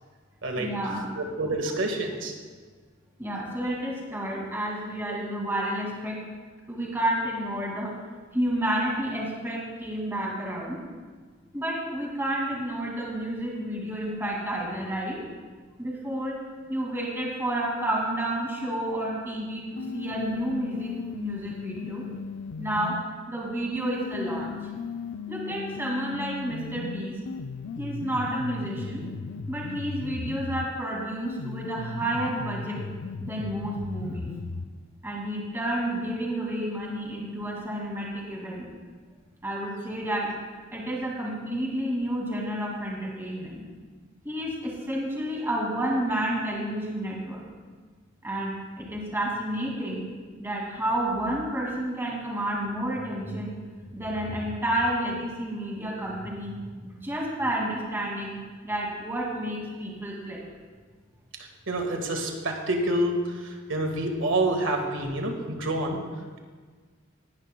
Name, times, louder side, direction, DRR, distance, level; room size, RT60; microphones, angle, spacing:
voice 1, 0.6-1.1 3.2-6.2 6.7-7.9 8.3-10.8 11.5-15.2 15.8-16.3 16.7-22.0 22.6-22.9 23.3-24.5 25.3-27.1 27.8-29.0 29.5-32.8 33.2-34.3 35.0-38.7 39.4-40.3 40.7-43.6 44.2-47.4 48.2-50.0 50.4-53.6 53.9-56.5 56.8-58.4 58.6-60.4, right 1 dB, 10° right, -3 dB, 2.3 m, -30 dB
voice 2, 1.2-2.3 61.7-66.0, right 1 dB, 80° right, 3 dB, 1.6 m, -27 dB
sound 1, 19.8-23.0 23.8-30.7 31.3-34.7, left 5 dB, 70° left, 0.5 m, -36 dB
19.5 x 11.0 x 2.3 m, 1.5 s
head